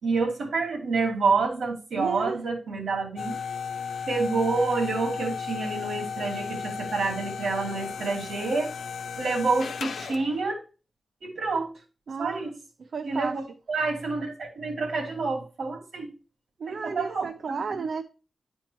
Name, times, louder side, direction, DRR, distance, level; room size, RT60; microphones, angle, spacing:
voice 1, 0.0-3.4 4.1-8.7 9.2-10.6 11.2-11.7 12.2-12.5 13.0-13.4 13.7-16.1 16.7-17.3, right 4 dB, 80° right, 2.6 m, -28 dB
voice 2, 1.9-2.4 12.1-12.5 12.8-13.4 16.6-18.0, right 5 dB, 65° right, 0.5 m, -33 dB
sound 1, 3.2-10.4, left 6 dB, 90° left, 0.5 m, -35 dB
11.0 x 4.5 x 3.0 m
wide cardioid pair, 155°, 0 cm